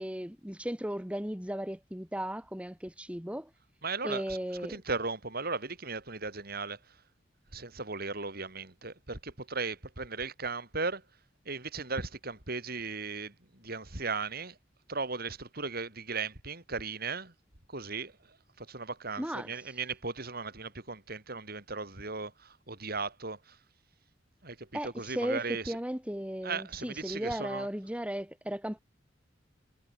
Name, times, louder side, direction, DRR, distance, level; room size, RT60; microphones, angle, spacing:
voice 1, 0.0-3.5 4.0-4.8 19.2-19.5 24.7-28.8, equal, 5° right, 2.6 m, -36 dB
voice 2, 3.8-4.4 4.6-6.8 7.5-11.0 11.5-14.6 14.9-17.3 17.7-18.1 18.6-23.6 24.4-25.8 26.4-27.7, right 4 dB, 55° right, 5.5 m, -37 dB
head